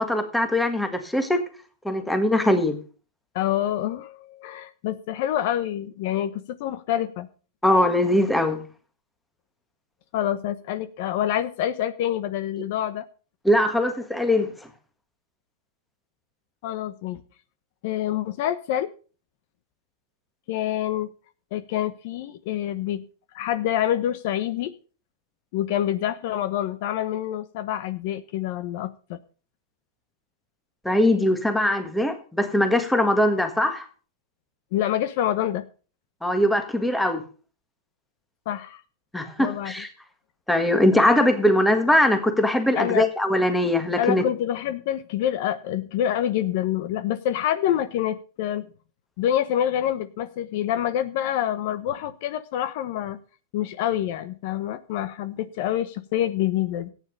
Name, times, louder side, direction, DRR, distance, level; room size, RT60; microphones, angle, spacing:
voice 1, 0.0-1.4 1.8-2.8 7.6-8.6 13.4-14.5 30.8-33.9 36.2-37.2 39.1-39.9 40.5-44.2, left 1 dB, 5° left, 1.6 m, -21 dB
voice 2, 3.3-7.3 10.1-13.0 16.6-17.2 17.8-18.9 20.5-21.1 21.5-23.0 23.3-24.7 25.5-29.2 34.7-35.7 38.5-38.8 39.4-39.7 42.7-43.1 44.0-48.7 49.2-53.2 53.5-56.9, left 11 dB, 50° left, 1.0 m, -26 dB
14.5 x 9.4 x 5.3 m
supercardioid pair, 160°, 0 cm